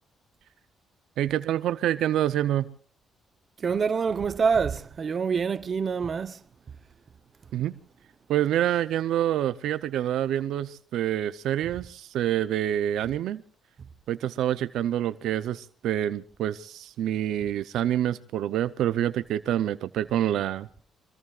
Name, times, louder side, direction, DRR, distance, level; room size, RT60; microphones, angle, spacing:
voice 1, 1.2-2.7 7.5-7.7 8.3-13.4 14.1-20.7, right 11 dB, 80° right, 0.7 m, -27 dB
voice 2, 3.6-6.4, right 6 dB, 45° right, 0.9 m, -26 dB
25.5 x 22.0 x 2.5 m
cardioid pair, 90°, 0 cm